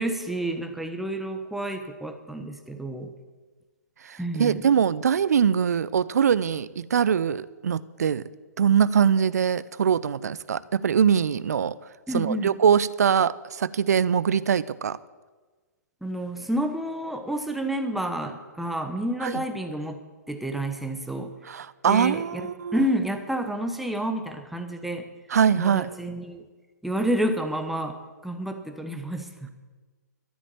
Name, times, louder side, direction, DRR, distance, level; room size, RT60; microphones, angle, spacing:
voice 1, 0.0-3.1 4.2-4.7 12.1-12.5 16.0-20.0 20.3-21.3 21.9-25.1 25.5-26.4 26.8-28.0 28.2-29.5, right 1 dB, ahead, 5 dB, 1.2 m, -29 dB
voice 2, 4.1-8.3 8.6-11.7 12.1-15.0 19.2-19.4 21.5-22.8 25.3-25.9, right 7 dB, 60° right, 19 dB, 0.6 m, -23 dB
13.0 x 8.4 x 8.9 m, 1.3 s
figure-of-eight pair, 120°, 10 cm